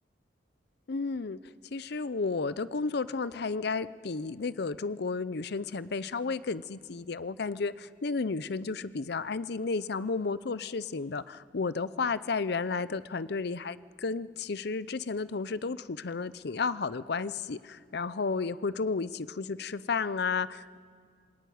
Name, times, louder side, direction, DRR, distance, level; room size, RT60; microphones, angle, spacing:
voice 1, 0.9-1.4 1.7-20.8, left 4 dB, 60° left, 16 dB, 0.6 m, -32 dB
27.0 x 20.5 x 9.3 m, 2.1 s
head